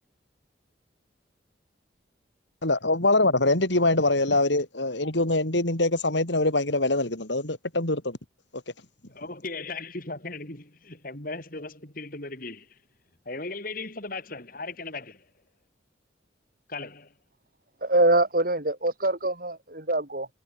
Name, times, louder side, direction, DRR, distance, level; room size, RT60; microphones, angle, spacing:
voice 1, 2.6-8.2, left 2 dB, 80° left, 4.8 m, -24 dB
voice 2, 9.1-12.8 13.3-15.3 16.7-17.1, left 3 dB, 50° left, 5.1 m, -37 dB
voice 3, 17.8-20.3, right 2 dB, 50° right, 5.3 m, -24 dB
head